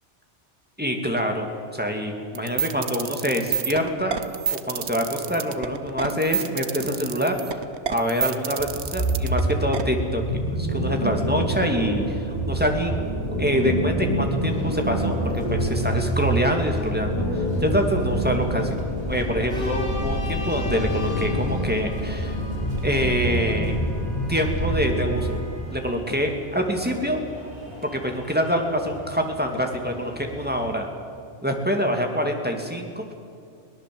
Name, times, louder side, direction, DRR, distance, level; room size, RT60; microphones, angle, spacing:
voice 1, 0.8-4.2 4.5-7.6 7.9-8.7 8.9-10.2 10.5-12.9 13.4-18.8 19.1-22.4 22.8-23.8 24.3-25.4 25.7-27.2 27.9-30.9 31.4-33.0, equal, 10° right, 3 dB, 2.4 m, -25 dB
sound 1, 2.3-9.8, right 8 dB, 70° right, 1.3 m, -28 dB
sound 2, 8.6-25.5, equal, 35° left, 7.0 m, -26 dB
sound 3, 14.4-30.7, left 2 dB, 55° left, 5.6 m, -39 dB
23.0 x 18.0 x 7.8 m, 2.5 s
omnidirectional pair, 1.2 m